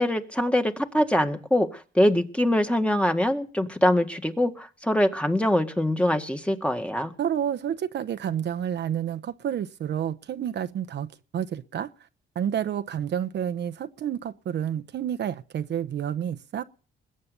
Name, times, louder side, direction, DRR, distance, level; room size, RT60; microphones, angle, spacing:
voice 1, 0.0-7.1, left 1 dB, 5° left, 1.8 m, -23 dB
voice 2, 7.2-11.9 12.3-16.6, right 9 dB, 60° right, 0.9 m, -29 dB
21.0 x 8.9 x 6.8 m
cardioid pair, 90°, 20 cm